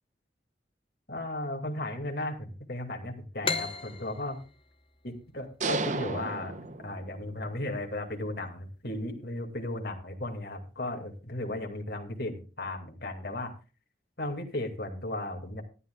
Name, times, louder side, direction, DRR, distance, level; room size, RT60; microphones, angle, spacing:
voice 1, 1.1-4.4 5.0-13.5 14.2-15.6, left 1 dB, 60° left, 2 dB, 2.3 m, -35 dB
sound 1, 3.4-6.9, left 4 dB, 30° left, 0.9 m, -36 dB
sound 2, 5.6-7.4, right 3 dB, 40° right, 0.7 m, -33 dB
18.0 x 11.5 x 2.3 m, 0.33 s
head